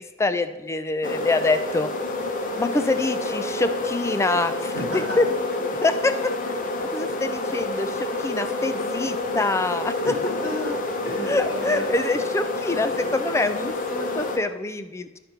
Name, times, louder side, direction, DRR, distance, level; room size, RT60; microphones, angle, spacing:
voice 1, 0.0-1.9 2.6-5.3 5.8-6.6 6.9-9.9 11.3-15.2, left 2 dB, 15° left, 10 dB, 0.4 m, -25 dB
sound 1, 1.0-14.4, left 2 dB, 40° left, 0.7 m, -28 dB
voice 2, 4.7-5.2 10.0-11.9, equal, 60° left, -4 dB, 2.8 m, -31 dB
12.0 x 5.0 x 4.4 m, 1.1 s
head